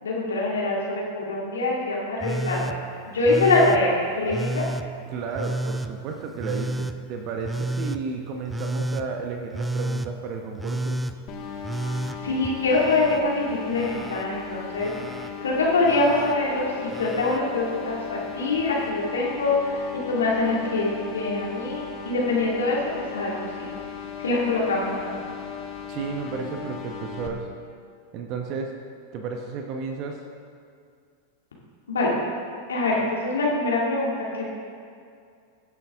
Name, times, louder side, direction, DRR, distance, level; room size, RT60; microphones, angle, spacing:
voice 1, 0.0-2.7 3.1-4.7 12.2-14.9 15.4-22.8 23.1-23.7 24.2-25.1 31.9-32.1 32.7-34.6, left 2 dB, 80° left, -4 dB, 2.2 m, -24 dB
Telephone, 2.2-2.8 3.2-3.8 4.3-4.8 5.4-5.9 6.4-6.9 7.4-8.0 8.5-9.0 9.5-10.1 10.6-11.1 11.6-13.2 13.5-14.2 14.8-15.3 15.8-16.3 16.9-17.4 18.6-18.7, right 2 dB, 10° right, 0.5 m, -30 dB
voice 2, 5.1-11.0 25.9-27.5 28.1-28.7 29.1-30.2, right 5 dB, 45° right, 3 dB, 1.0 m, -32 dB
sound 1, 11.3-27.3, left 6 dB, 40° left, 1.3 m, -37 dB
16.0 x 8.6 x 3.6 m, 2.3 s
figure-of-eight pair, 95°, 0 cm